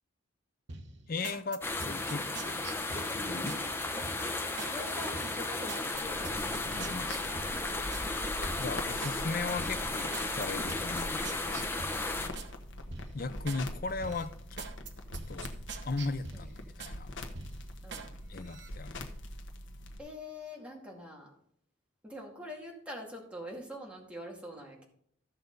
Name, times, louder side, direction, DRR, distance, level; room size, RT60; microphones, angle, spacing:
sound 1, 0.7-3.6 4.0-4.8 5.1-8.1 8.5-9.2 9.5-12.5 12.9-13.6 14.0-17.0 17.3-18.1 18.4-18.7, right 4 dB, 60° right, 1.0 m, -45 dB
voice 1, 1.1-2.7 3.1-3.6 6.5-7.1 8.6-11.6 13.1-14.7 15.3-15.5 15.8-17.1 18.3-19.1, left 3 dB, 45° left, 0.6 m, -37 dB
sound 2, 1.6-12.3, left 2 dB, 10° left, 0.8 m, -35 dB
voice 2, 2.7-3.2 4.7-6.4 7.7-7.9 11.9-12.5 16.3-16.5 17.8-18.1 20.0-21.3 22.0-24.8, left 1 dB, 5° right, 2.2 m, -44 dB
sound 3, 5.9-20.0, left 1 dB, 70° left, 1.2 m, -43 dB
14.5 x 6.7 x 4.0 m
head